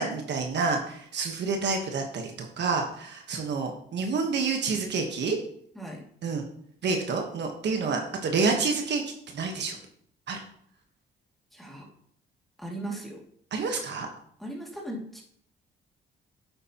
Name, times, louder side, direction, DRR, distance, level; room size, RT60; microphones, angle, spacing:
voice 1, 0.0-5.4 6.2-6.4 6.8-9.0 9.3-9.8 10.3-10.4 13.5-14.1, right 4 dB, 60° right, 3 dB, 1.4 m, -28 dB
voice 2, 11.5-11.9 12.6-13.2 14.4-15.2, right 1 dB, ahead, -2 dB, 2.5 m, -37 dB
9.2 x 8.0 x 3.0 m, 0.66 s
cardioid pair, 90°, 20 cm